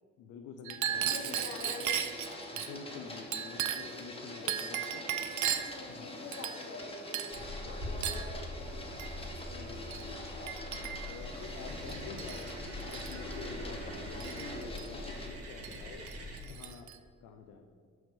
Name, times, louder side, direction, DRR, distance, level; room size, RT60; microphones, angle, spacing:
voice 1, 0.2-1.7 2.5-5.1 5.9-6.4 9.5-10.3 11.1-12.5 12.8-16.1 16.5-16.9 17.2-17.7, left 6 dB, 90° left, 4 dB, 0.6 m, -48 dB
Chink clink, 0.6-2.7 3.3-4.0 4.5-5.8 6.3-6.8 7.1-7.4 8.0-8.3 9.0-9.2 9.9-10.1 10.5-11.2 11.9-12.5 12.8-13.2 14.2-14.9 15.6-15.8 16.1-17.0, right 10 dB, 70° right, 0.6 m, -36 dB
Printer, 0.9-15.3, left 1 dB, 20° left, 1.3 m, -45 dB
voice 2, 1.0-2.1 4.4-5.2 5.6-9.5 13.7-14.0, left 3 dB, 55° left, 4 dB, 1.2 m, -47 dB
sound 1, 7.3-16.4, left 1 dB, 55° right, 1.8 m, -43 dB
6.2 x 5.1 x 5.2 m, 2.1 s
cardioid pair, 90°, 30 cm